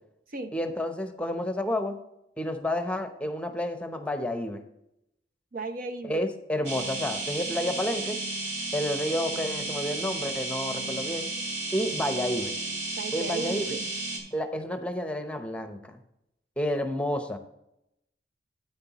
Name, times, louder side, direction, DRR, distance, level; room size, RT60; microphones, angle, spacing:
voice 1, 0.5-2.0 2.4-4.6 6.0-8.2 8.7-11.3 11.7-12.5 13.1-13.8 14.3-16.0 16.6-17.4, left 1 dB, 5° left, 7 dB, 0.8 m, -30 dB
voice 2, 5.5-6.3 13.0-13.9, right 4 dB, 50° right, 7 dB, 0.7 m, -35 dB
sound 1, 6.7-14.2, right 2 dB, 75° right, 2.7 m, -33 dB
9.5 x 9.1 x 3.0 m, 0.84 s
head